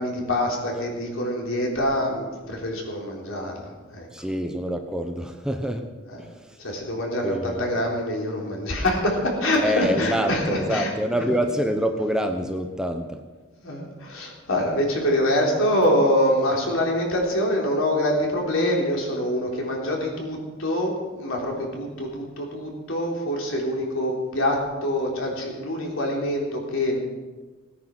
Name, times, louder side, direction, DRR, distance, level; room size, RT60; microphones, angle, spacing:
voice 1, 0.0-4.1 6.1-6.2 6.6-11.3 13.6-27.0, left 1 dB, 75° left, -1 dB, 3.6 m, -25 dB
voice 2, 4.1-5.9 6.2-6.6 7.2-7.7 9.6-13.2, equal, 5° right, 5 dB, 0.9 m, -26 dB
18.0 x 9.7 x 6.1 m, 1.3 s
head